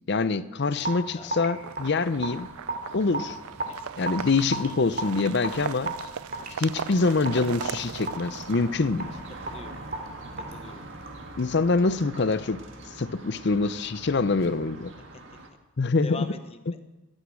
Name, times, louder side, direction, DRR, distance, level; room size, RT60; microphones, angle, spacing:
voice 1, 0.1-2.5 2.9-3.4 4.0-5.9 6.6-9.1 11.4-12.6 13.0-14.9 15.8-16.2, left 3 dB, 50° left, 0.6 m, -25 dB
voice 2, 0.6-1.3 3.9-4.1 9.5-9.7 10.3-10.8 16.0-16.8, left 3 dB, 25° left, 0.9 m, -43 dB
Raindrop / Drip, 0.8-11.3, right 2 dB, 40° right, 2.6 m, -36 dB
sound 1, 1.5-9.5, right 8 dB, 85° right, 0.4 m, -39 dB
sound 2, 2.1-15.5, right 2 dB, 60° right, 1.8 m, -45 dB
14.5 x 13.0 x 6.3 m
head